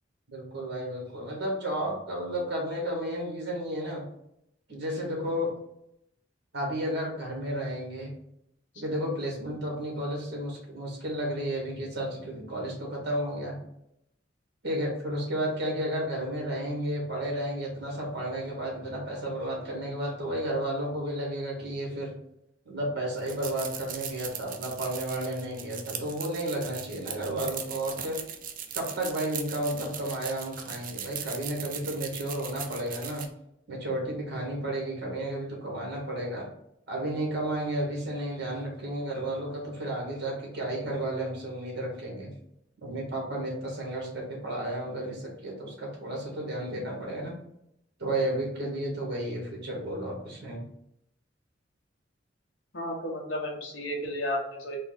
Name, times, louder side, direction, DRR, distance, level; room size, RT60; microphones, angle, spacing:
voice 1, 0.3-4.0 4.7-5.5 6.5-8.1 8.7-13.6 14.6-22.1 22.6-28.2 28.7-33.3 33.7-36.5 36.9-42.3 42.8-47.3 48.0-50.6, right 1 dB, 65° right, -1 dB, 1.5 m, -32 dB
sound 1, 23.1-33.3, right 8 dB, 50° right, 0.5 m, -39 dB
voice 2, 52.7-54.8, left 1 dB, 90° left, -1 dB, 1.2 m, -33 dB
4.2 x 2.3 x 4.0 m, 0.77 s
head